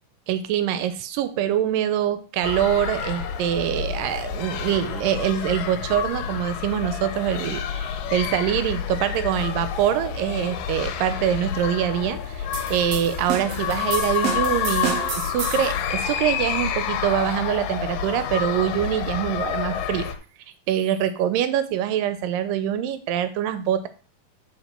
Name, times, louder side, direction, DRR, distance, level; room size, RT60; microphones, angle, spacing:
voice 1, 0.3-20.1 20.7-23.9, right 10 dB, 85° right, 12 dB, 2.3 m, -24 dB
sound 1, 2.4-20.1, left 8 dB, 85° left, 2.4 m, -29 dB
sound 2, 12.5-15.8, right 7 dB, 65° right, 1.6 m, -30 dB
8.9 x 4.8 x 4.3 m, 0.38 s
omnidirectional pair, 3.9 m